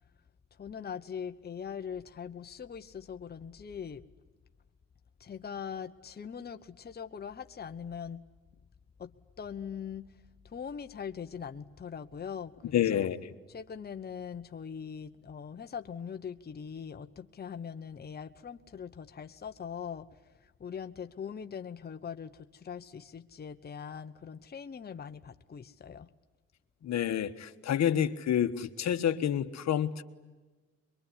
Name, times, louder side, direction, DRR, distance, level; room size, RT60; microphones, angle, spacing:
voice 1, 0.6-4.0 5.2-8.3 9.0-10.1 10.4-13.1 13.5-20.1 20.4-26.1, left 7 dB, 30° left, 7 dB, 1.1 m, -41 dB
voice 2, 12.7-13.3 26.8-30.0, left 10 dB, 65° left, 10 dB, 1.4 m, -29 dB
23.5 x 23.0 x 9.8 m, 1.3 s
cardioid pair, 90°, 30 cm